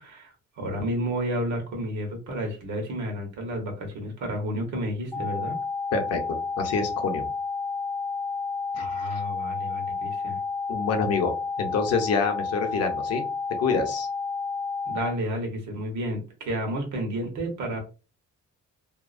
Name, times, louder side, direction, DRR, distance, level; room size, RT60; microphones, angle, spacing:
voice 1, 0.0-5.5 8.8-10.4 14.9-17.8, equal, 75° right, 2 dB, 1.1 m, -31 dB
sound 1, 5.1-15.1, left 4 dB, 10° left, 0.4 m, -31 dB
voice 2, 5.9-7.2 8.7-9.2 10.7-13.3 13.6-14.1, left 5 dB, 55° left, 4 dB, 0.6 m, -27 dB
2.7 x 2.0 x 2.4 m, 0.32 s
cardioid pair, 155°, 30 cm